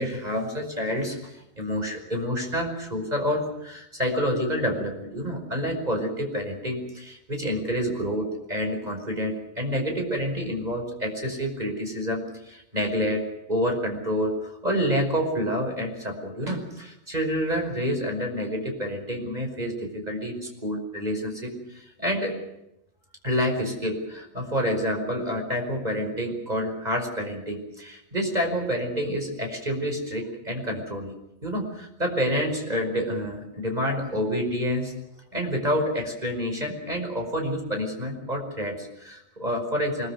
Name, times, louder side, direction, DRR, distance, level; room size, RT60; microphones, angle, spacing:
voice 1, 0.0-22.3 23.2-34.9 35.3-40.1, equal, 10° right, 3 dB, 5.0 m, -28 dB
25.5 x 22.0 x 6.6 m, 0.85 s
omnidirectional pair, 4.7 m